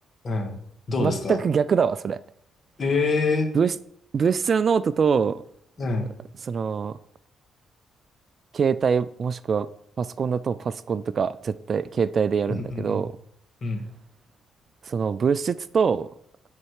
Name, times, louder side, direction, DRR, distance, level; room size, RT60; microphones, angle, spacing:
voice 1, 0.2-0.6 0.9-1.4 2.8-3.5 5.8-6.1 12.7-13.0 13.6-13.8, left 3 dB, 40° left, 4 dB, 1.8 m, -25 dB
voice 2, 1.0-2.2 3.5-3.7 4.1-5.4 6.4-7.0 8.5-9.7 10.0-13.1 14.8-16.1, right 6 dB, 45° right, 16 dB, 0.3 m, -24 dB
9.7 x 4.3 x 4.8 m, 0.71 s
cardioid pair, 90°, 0 cm